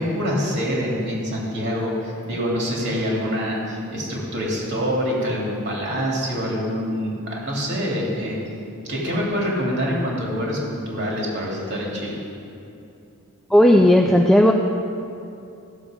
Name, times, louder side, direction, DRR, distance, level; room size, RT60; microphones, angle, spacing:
voice 1, 0.0-8.4 8.9-12.2, equal, 55° right, -3 dB, 2.7 m, -25 dB
voice 2, 13.5-14.5, equal, 5° left, 1 dB, 0.4 m, -14 dB
15.0 x 7.1 x 5.0 m, 2.8 s
head